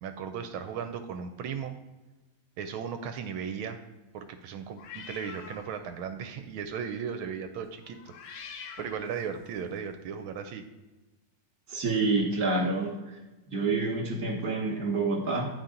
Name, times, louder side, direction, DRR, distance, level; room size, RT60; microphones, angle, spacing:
voice 1, 0.0-1.7 2.6-3.8 4.1-8.0 8.2-8.5 8.8-10.6, right 7 dB, 75° right, 8 dB, 1.3 m, -36 dB
sound 1, 4.8-6.0 6.3-6.6 7.8-9.7, left 6 dB, 75° left, 0.8 m, -46 dB
voice 2, 11.7-13.1 13.5-15.5, right 3 dB, 50° right, 1 dB, 1.6 m, -28 dB
9.5 x 4.2 x 3.8 m, 1.1 s
omnidirectional pair, 2.4 m